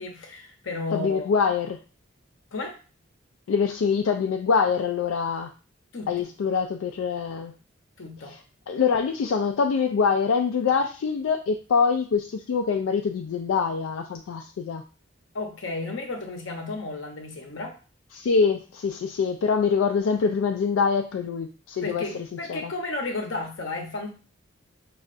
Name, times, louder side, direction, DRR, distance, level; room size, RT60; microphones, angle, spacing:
voice 1, 0.0-1.3 2.5-2.8 5.9-6.3 8.0-8.4 15.3-17.8 21.8-24.1, left 2 dB, 70° left, 2 dB, 0.8 m, -33 dB
voice 2, 0.9-1.8 3.5-5.5 6.1-7.5 8.3-8.4 8.7-14.8 18.1-22.0 22.5-22.7, left 5 dB, 85° left, 4 dB, 0.3 m, -24 dB
5.3 x 2.4 x 2.5 m, 0.36 s
head